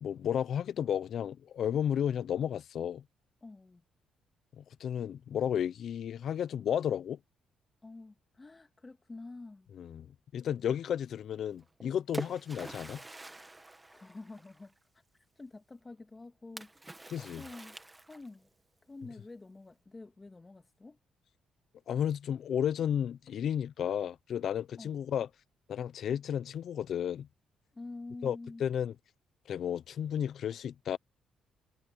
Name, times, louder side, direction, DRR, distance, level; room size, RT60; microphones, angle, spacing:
voice 1, 0.0-3.0 4.6-7.2 9.8-10.1 10.3-13.0 17.1-17.4 21.9-25.3 25.7-27.3 28.2-28.9 29.5-31.0, left 9 dB, 65° left, 0.7 m, -33 dB
voice 2, 3.4-3.8 7.8-9.7 13.9-14.7 15.4-16.7 17.4-17.8 18.1-18.5 18.9-21.0 24.8-25.0 27.7-28.6, left 3 dB, 20° left, 2.6 m, -47 dB
Splash splatter, 11.6-14.8 16.6-18.5, right 2 dB, 15° right, 1.8 m, -45 dB
cardioid pair, 90°, 0 cm